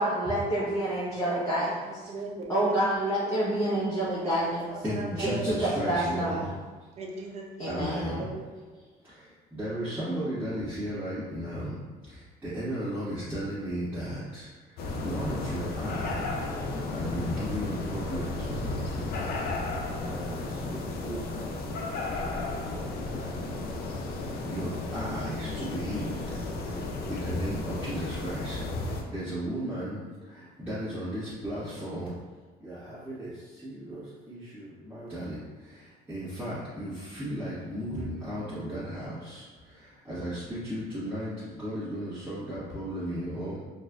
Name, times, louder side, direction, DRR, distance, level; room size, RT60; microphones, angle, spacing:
voice 1, 0.0-1.7 2.5-4.7 5.2-6.4 7.6-8.3, right 1 dB, 15° left, -11 dB, 0.9 m, -28 dB
voice 2, 1.2-1.7 2.1-3.4 4.0-5.6 6.1-6.4 7.0-7.8 8.2-8.5, right 2 dB, 40° right, 0 dB, 0.6 m, -39 dB
voice 3, 4.8-6.5 7.7-8.3 9.0-9.1 9.5-11.8 12.1-14.5 15.0-16.3 16.9-18.8 20.1-21.5 22.3-23.5 24.5-26.2 27.1-30.0 30.3-32.1 32.6-35.4 35.6-39.5 40.1-43.6, equal, 10° right, -15 dB, 1.3 m, -35 dB
sound 1, 14.8-29.0, left 2 dB, 65° left, 0.5 m, -33 dB
4.0 x 2.5 x 2.4 m, 1.3 s
cardioid pair, 110°, 17 cm